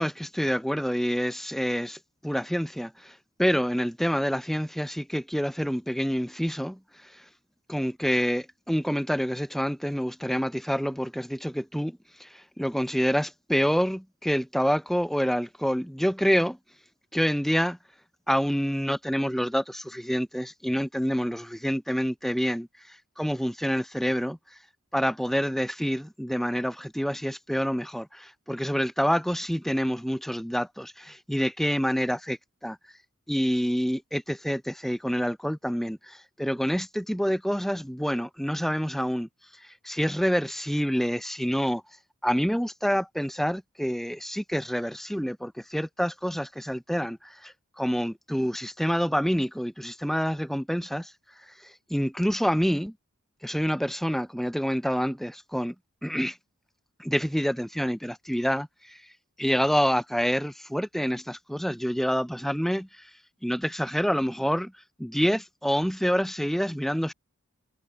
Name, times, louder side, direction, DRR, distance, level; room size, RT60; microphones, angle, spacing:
voice 1, 0.0-7.3 7.7-16.6 17.1-17.8 18.3-24.6 24.9-32.8 33.3-41.8 42.2-52.9 53.4-55.7 56.0-56.4 57.0-59.1 59.4-63.1 63.4-64.7 65.0-67.1, equal, ahead, 2.7 m, -27 dB
head